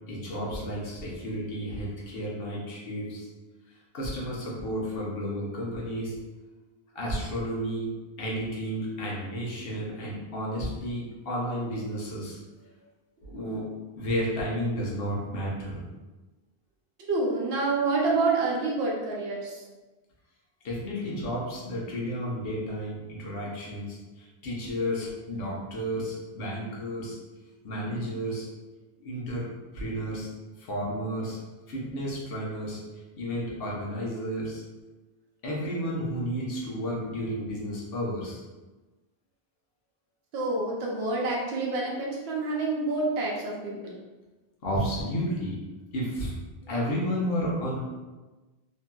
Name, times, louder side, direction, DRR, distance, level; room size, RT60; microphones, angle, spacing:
voice 1, 0.1-3.3 3.9-6.1 6.9-7.9 8.2-12.4 13.2-13.7 14.0-15.8 20.6-27.2 27.6-28.4 29.0-30.3 30.7-31.4 31.7-32.8 33.1-34.6 35.4-38.4 44.6-45.6 45.9-46.3 46.7-47.8, equal, 70° left, -4 dB, 1.0 m, -32 dB
voice 2, 17.1-19.6 40.3-43.9, right 3 dB, 90° right, -3 dB, 0.9 m, -28 dB
2.9 x 2.5 x 2.2 m, 1.2 s
omnidirectional pair, 1.0 m